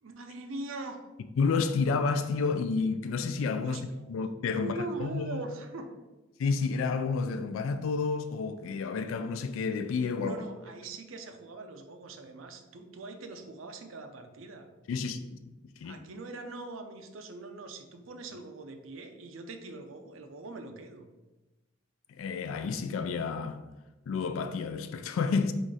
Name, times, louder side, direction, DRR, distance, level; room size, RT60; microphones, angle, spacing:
voice 1, 0.0-1.0 3.6-4.0 4.6-6.0 10.2-14.7 15.8-21.1, right 2 dB, 85° right, 0.5 m, -42 dB
voice 2, 1.4-3.8 4.1-5.4 6.4-10.4 14.9-15.2 15.8-16.0 22.2-23.6 24.1-25.5, left 4 dB, 85° left, 0.3 m, -30 dB
4.1 x 2.4 x 4.7 m
head